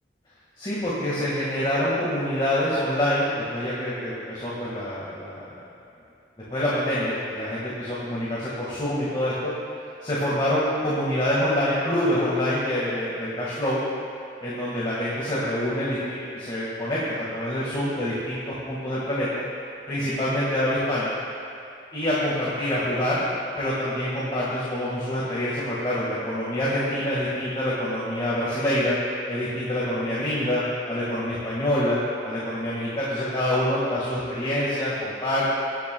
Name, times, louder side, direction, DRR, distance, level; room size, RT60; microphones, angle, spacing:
voice 1, 0.6-5.7 6.5-9.5 10.0-13.8 14.4-19.4 19.9-21.1 21.9-23.2 23.6-29.0 29.3-35.5, left 1 dB, 30° left, -8 dB, 1.7 m, -26 dB
20.5 x 9.2 x 2.3 m, 2.5 s
head